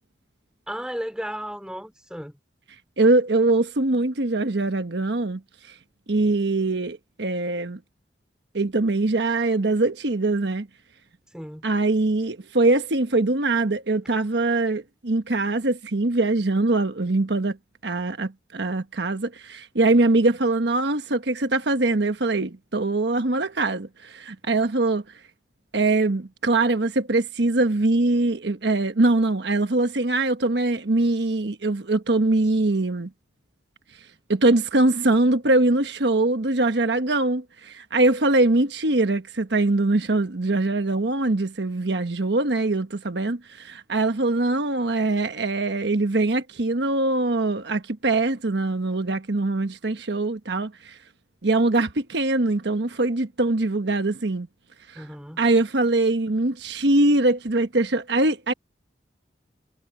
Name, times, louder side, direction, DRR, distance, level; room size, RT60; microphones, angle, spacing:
voice 1, 0.7-2.3 11.3-11.6 54.9-55.4, equal, 5° right, 3.1 m, -34 dB
voice 2, 3.0-5.4 6.1-7.8 8.5-10.7 11.6-17.6 17.8-25.0 25.7-33.1 34.3-51.0 51.4-54.5 54.9-55.0 55.4-58.5, right 2 dB, 75° right, 1.2 m, -22 dB
head